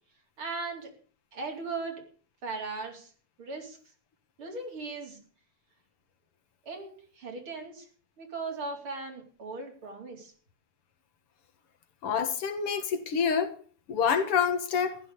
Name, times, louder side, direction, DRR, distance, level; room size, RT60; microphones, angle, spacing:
voice 1, 0.4-0.9 1.3-2.0 2.4-3.1 3.4-3.8 4.4-5.2 6.6-7.9 8.2-10.3, right 3 dB, 70° right, 2 dB, 4.6 m, -38 dB
voice 2, 12.0-13.6 13.9-15.0, left 7 dB, 85° left, 9 dB, 2.5 m, -27 dB
14.5 x 12.0 x 6.8 m, 0.42 s
omnidirectional pair, 2.4 m